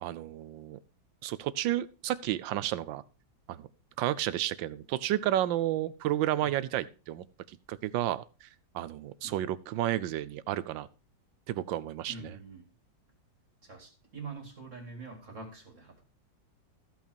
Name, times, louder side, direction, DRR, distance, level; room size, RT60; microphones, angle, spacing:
voice 1, 0.0-0.8 1.2-3.0 3.5-3.7 4.0-8.5 8.7-10.9 11.5-12.3, right 13 dB, 90° right, 17 dB, 1.4 m, -32 dB
voice 2, 12.1-12.7 13.6-16.0, right 4 dB, 40° right, 2 dB, 2.8 m, -45 dB
14.5 x 5.7 x 4.4 m, 0.33 s
omnidirectional pair, 2.0 m